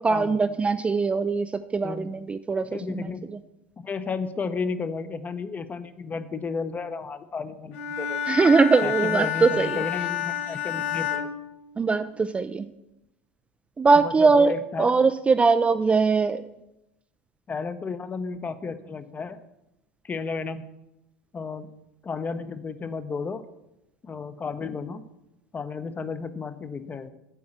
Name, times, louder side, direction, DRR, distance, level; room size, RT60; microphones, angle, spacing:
voice 1, 0.0-3.1 8.3-9.8 11.8-12.7 13.8-14.5 14.8-16.4, right 4 dB, 15° right, 10 dB, 0.3 m, -21 dB
voice 2, 1.8-2.1 2.5-3.3 3.8-8.2 8.8-11.3 13.9-15.0 17.5-19.4 20.0-20.7 21.3-21.7 22.0-23.4 24.0-25.0 25.5-27.1, left 4 dB, 25° left, 11 dB, 0.7 m, -33 dB
Bowed string instrument, 7.7-12.2, left 10 dB, 65° left, 0.9 m, -30 dB
8.2 x 4.7 x 7.3 m, 0.90 s
hypercardioid pair, 80°, 7 cm